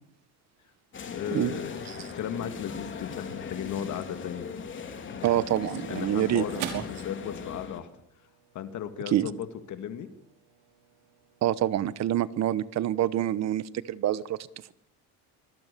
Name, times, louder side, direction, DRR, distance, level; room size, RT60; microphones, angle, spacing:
sound 1, 0.9-7.8, left 6 dB, 35° left, 3.2 m, -39 dB
voice 1, 1.1-1.9 2.1-4.5 5.1-5.4 5.9-7.9 8.5-10.1, left 9 dB, 55° left, 9 dB, 2.0 m, -36 dB
voice 2, 5.2-6.8 9.1-9.3 11.4-14.4, right 12 dB, 45° right, 17 dB, 1.1 m, -26 dB
sound 2, 5.3-13.9, right 8 dB, 90° right, 5.3 m, -46 dB
25.5 x 20.0 x 6.9 m, 0.73 s
cardioid pair, 135°, 36 cm